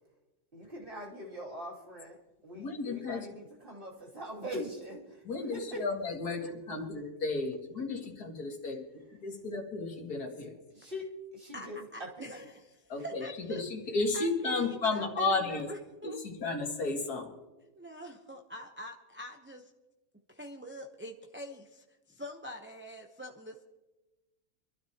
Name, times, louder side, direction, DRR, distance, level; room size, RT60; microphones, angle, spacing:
voice 1, 0.5-2.2 2.4-5.8 10.7-12.3, equal, 35° right, -3 dB, 2.9 m, -42 dB
voice 2, 2.5-3.3 5.3-8.8 9.2-10.5 12.9-13.2 13.5-15.7 16.0-17.3, left 3 dB, 85° left, 1 dB, 2.4 m, -33 dB
voice 3, 11.5-13.6 14.1-16.2 17.6-19.7 20.3-23.6, equal, 10° right, 2 dB, 0.5 m, -45 dB
25.5 x 12.5 x 2.9 m, 1.1 s
omnidirectional pair, 1.6 m